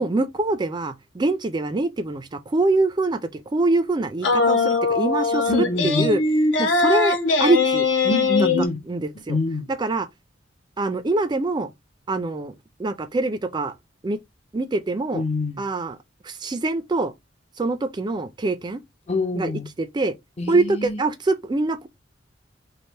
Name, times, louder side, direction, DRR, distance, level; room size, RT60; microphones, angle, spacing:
voice 1, 0.0-6.2 6.6-7.9 8.9-9.4 9.7-10.1 10.8-11.7 12.1-13.7 14.0-14.2 14.5-15.2 15.6-16.0 16.2-17.1 17.6-18.8 19.3-20.1 20.5-21.9, right 2 dB, 25° right, 0.4 m, -24 dB
sound 1, 4.2-8.7, left 4 dB, 70° left, 0.8 m, -21 dB
voice 2, 5.5-6.1 8.0-8.8 9.3-9.7 15.1-15.6 19.1-19.7 20.4-21.0, left 2 dB, 35° left, 0.6 m, -25 dB
3.2 x 2.5 x 4.2 m
head